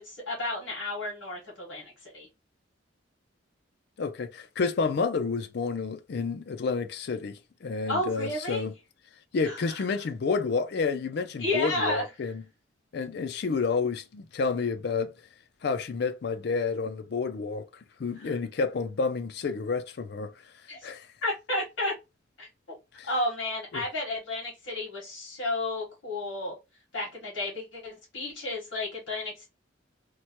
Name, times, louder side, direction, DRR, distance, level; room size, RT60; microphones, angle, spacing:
voice 1, 0.0-2.3 7.9-8.6 9.4-9.8 11.4-12.0 18.2-18.3 20.7-20.9 21.2-21.9 22.4-22.8 23.1-26.5 26.9-29.5, left 2 dB, 75° left, 1.4 m, -32 dB
voice 2, 4.0-8.7 9.3-12.4 12.9-15.1 15.6-17.6 18.0-20.3 20.8-21.1 23.0-23.1 23.7-23.8, left 4 dB, 55° left, 0.4 m, -30 dB
3.0 x 2.1 x 2.8 m
head